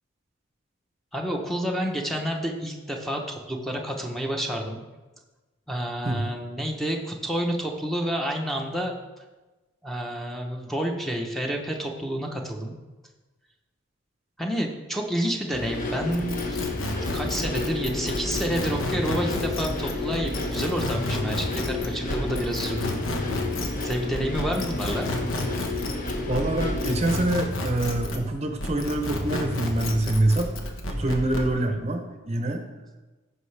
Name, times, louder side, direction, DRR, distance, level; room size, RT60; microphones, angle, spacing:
voice 1, 1.1-4.8 5.7-8.9 9.8-12.7 14.4-16.4 17.1-23.0 23.8-25.1, equal, ahead, 1 dB, 0.8 m, -29 dB
sound 1, 15.5-27.2, left 3 dB, 40° left, 1.1 m, -32 dB
sound 2, 16.1-28.3 28.6-31.5, left 1 dB, 75° left, 1.2 m, -31 dB
voice 2, 26.3-30.5 30.9-32.6, right 1 dB, 30° right, 5 dB, 0.7 m, -25 dB
15.0 x 5.7 x 3.3 m, 1.2 s
head